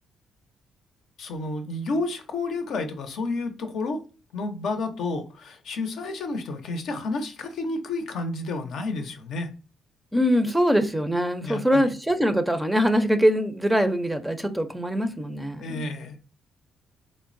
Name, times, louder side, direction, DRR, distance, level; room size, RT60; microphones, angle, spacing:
voice 1, 1.2-4.0 4.3-9.5 11.4-11.9 15.6-16.2, left 3 dB, 70° left, 0.6 m, -30 dB
voice 2, 10.1-16.0, equal, 5° right, 0.4 m, -23 dB
3.7 x 2.0 x 2.5 m
cardioid pair, 90°, 0 cm